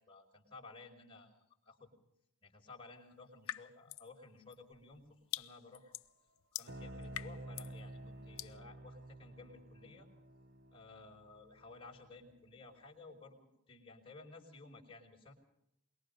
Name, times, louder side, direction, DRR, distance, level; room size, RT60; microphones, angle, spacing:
voice 1, 0.0-1.4 1.6-1.9 2.4-5.0 5.4-5.9 6.5-10.1 10.7-15.3, left 3 dB, 25° left, -1 dB, 5.1 m, -55 dB
sound 1, 3.5-4.1 4.5-7.8 8.4-8.6, left 12 dB, 80° left, 0.7 m, -45 dB
sound 2, 6.7-12.3, right 1 dB, 55° right, 0.9 m, -51 dB
24.0 x 22.0 x 5.3 m, 0.79 s
head